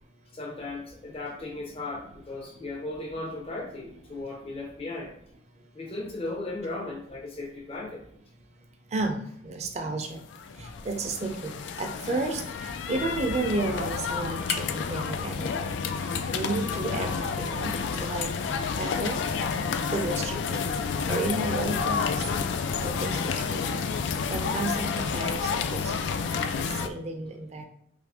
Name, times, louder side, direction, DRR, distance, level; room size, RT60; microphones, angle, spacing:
voice 1, 0.3-5.1 5.7-8.0 18.3-18.5, left 2 dB, 35° left, -3 dB, 0.5 m, -36 dB
voice 2, 8.9-10.2 10.6-15.7 16.3-18.3 18.8-19.2 19.9-20.6 21.1-22.0 22.8-23.6 24.3-24.9 25.1-27.6, right 3 dB, 40° right, 4 dB, 0.5 m, -32 dB
sound 1, 10.3-26.9, left 5 dB, 90° left, 0.3 m, -30 dB
3.1 x 2.5 x 3.4 m, 0.70 s
head